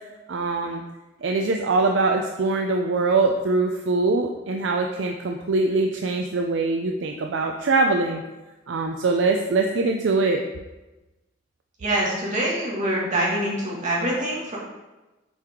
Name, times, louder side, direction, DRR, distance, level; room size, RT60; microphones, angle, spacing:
voice 1, 0.3-0.8 1.2-8.2 8.7-10.4, right 3 dB, 65° right, 3 dB, 0.5 m, -23 dB
voice 2, 11.8-14.6, right 1 dB, 40° right, -5 dB, 2.0 m, -25 dB
8.0 x 4.7 x 3.7 m, 1.1 s
head